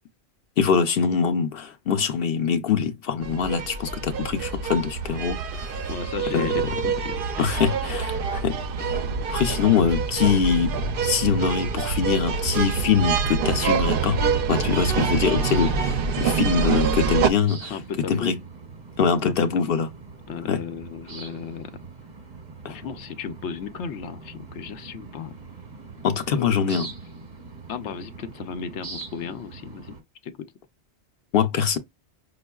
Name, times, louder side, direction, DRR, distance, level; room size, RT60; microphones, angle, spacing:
voice 1, 0.6-5.9 6.3-6.5 7.4-10.7 11.0-14.2 14.5-17.8 18.1-18.4 19.0-19.9 20.5-20.6 22.6-22.8 26.0-26.9 31.3-31.8, left 7 dB, 60° left, 0.8 m, -23 dB
sound 1, 3.2-17.3, right 5 dB, 60° right, 0.7 m, -26 dB
voice 2, 5.9-7.5 7.9-8.1 17.7-18.3 19.5-19.8 20.3-21.8 22.6-25.4 26.3-26.7 27.7-30.0 30.2-30.5, left 6 dB, 85° left, 0.9 m, -35 dB
sound 2, 14.3-30.0, right 4 dB, 45° right, 1.0 m, -43 dB
5.2 x 2.4 x 2.2 m
omnidirectional pair, 1.1 m